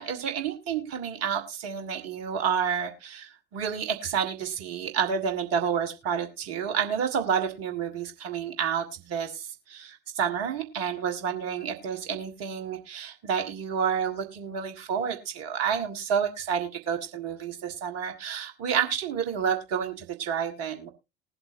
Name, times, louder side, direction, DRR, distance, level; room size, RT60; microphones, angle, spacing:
voice 1, 0.0-20.9, right 7 dB, 55° right, 6 dB, 1.7 m, -30 dB
20.0 x 7.9 x 2.5 m, 0.24 s
figure-of-eight pair, 70°, 30 cm